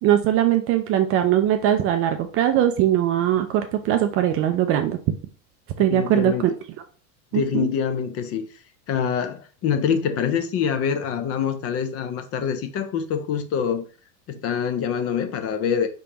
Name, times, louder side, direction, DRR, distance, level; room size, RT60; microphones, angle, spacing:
voice 1, 0.0-5.0 5.8-6.5 7.3-7.7, right 11 dB, 30° right, 0.4 m, -21 dB
voice 2, 5.8-6.5 7.3-8.5 8.9-13.9 14.3-15.9, left 7 dB, 30° left, 0.5 m, -25 dB
5.1 x 3.5 x 2.9 m
supercardioid pair, 120°, 45 cm